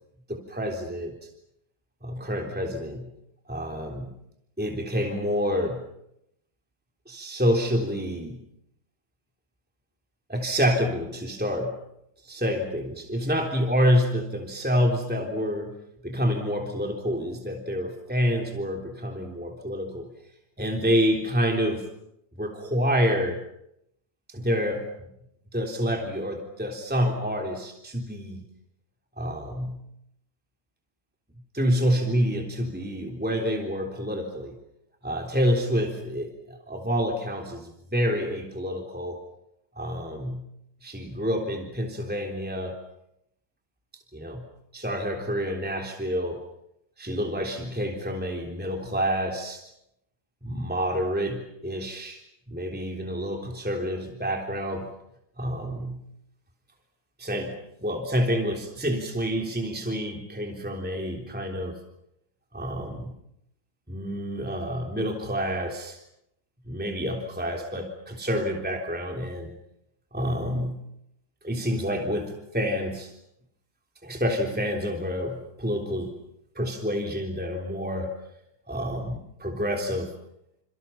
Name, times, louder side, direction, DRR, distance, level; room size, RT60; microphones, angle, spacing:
voice 1, 0.3-1.1 2.0-3.1 3.5-4.1 4.6-5.8 7.1-8.4 10.3-11.8 12.2-15.7 16.0-20.1 20.6-21.9 22.4-23.4 24.3-25.1 25.5-28.4 29.2-29.8 31.5-34.5 35.0-39.2 39.8-40.4 40.8-42.8 44.1-44.4 44.7-46.4 47.0-49.6 50.4-52.2 52.5-54.9 55.4-56.0 57.2-61.8 62.5-63.1 63.9-66.0 66.7-69.5 70.1-70.8 71.4-73.1 74.0-76.1 76.5-78.1 78.7-80.1, equal, 5° right, 2 dB, 3.4 m, -28 dB
29.5 x 27.5 x 5.8 m, 0.77 s
omnidirectional pair, 2.1 m